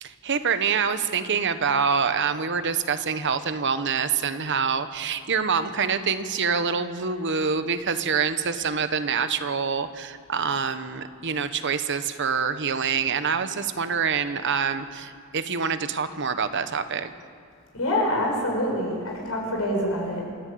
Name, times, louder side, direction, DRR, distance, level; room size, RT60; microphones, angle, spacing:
voice 1, 0.0-17.1, right 6 dB, 55° right, 10 dB, 1.1 m, -26 dB
voice 2, 17.7-20.2, left 1 dB, 75° left, 0 dB, 6.5 m, -26 dB
27.5 x 11.5 x 8.6 m, 2.3 s
head